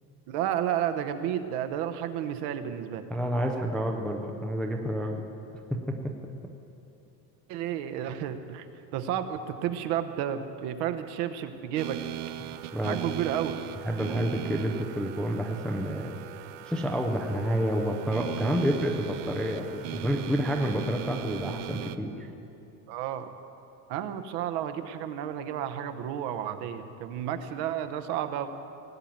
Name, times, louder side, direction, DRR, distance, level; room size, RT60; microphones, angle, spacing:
voice 1, 0.3-3.1 7.5-8.7 8.9-12.0 12.8-13.6 22.9-23.3 23.9-28.5, right 10 dB, 65° right, 9 dB, 1.1 m, -31 dB
voice 2, 3.1-5.2 6.0-6.1 12.7-13.0 13.8-16.1 16.7-22.3, equal, ahead, 2 dB, 0.3 m, -29 dB
sound 1, 11.8-22.0, right 14 dB, 85° right, 0.8 m, -39 dB
18.0 x 7.3 x 9.2 m, 2.7 s
cardioid pair, 165°, 45 cm